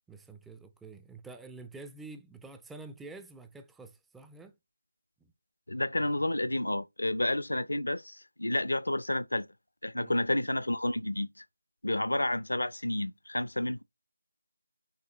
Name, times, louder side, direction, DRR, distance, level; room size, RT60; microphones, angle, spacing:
voice 1, 0.1-4.6 9.9-10.1, right 3 dB, 5° right, 0.3 m, -48 dB
voice 2, 5.7-9.5 9.8-11.4 11.8-13.8, left 1 dB, 85° left, 0.6 m, -30 dB
5.7 x 2.8 x 3.0 m
figure-of-eight pair, 165°, 0 cm